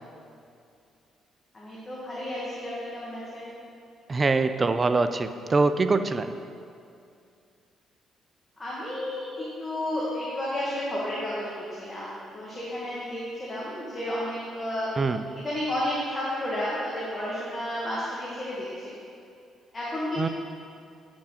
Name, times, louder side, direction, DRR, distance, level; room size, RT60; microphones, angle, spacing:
voice 1, 1.5-3.5 8.6-18.9 19.7-20.3, left 1 dB, 25° left, -7 dB, 1.9 m, -32 dB
voice 2, 4.1-6.3 15.0-15.2 20.2-20.3, right 3 dB, 30° right, 10 dB, 0.4 m, -24 dB
9.8 x 6.2 x 4.2 m, 2.4 s
cardioid pair, 90°, 0 cm